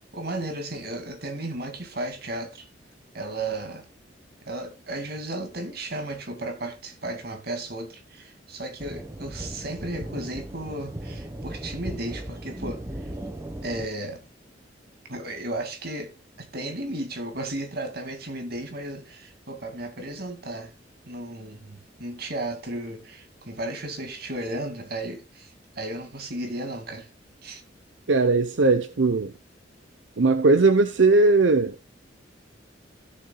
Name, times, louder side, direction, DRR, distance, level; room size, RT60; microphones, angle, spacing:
voice 1, 0.1-2.7 3.1-3.9 4.5-13.1 13.6-14.2 15.1-20.7 21.0-27.1 27.4-27.6, right 1 dB, 60° right, 2.2 m, -34 dB
sound 1, 8.8-13.9, right 1 dB, 15° right, 1.2 m, -37 dB
voice 2, 28.1-29.3 30.2-31.8, right 3 dB, 80° right, 0.7 m, -19 dB
16.5 x 7.0 x 2.3 m
head